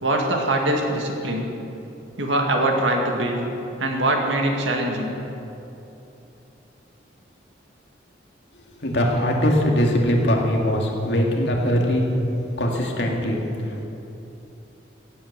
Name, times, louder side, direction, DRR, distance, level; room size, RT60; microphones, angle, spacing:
voice 1, 0.0-1.4 2.2-3.4 3.8-5.1, right 1 dB, 80° right, 1 dB, 2.1 m, -22 dB
voice 2, 8.7-12.0 12.6-13.8, equal, 65° left, 0 dB, 2.2 m, -21 dB
16.0 x 8.8 x 8.0 m, 3.0 s
head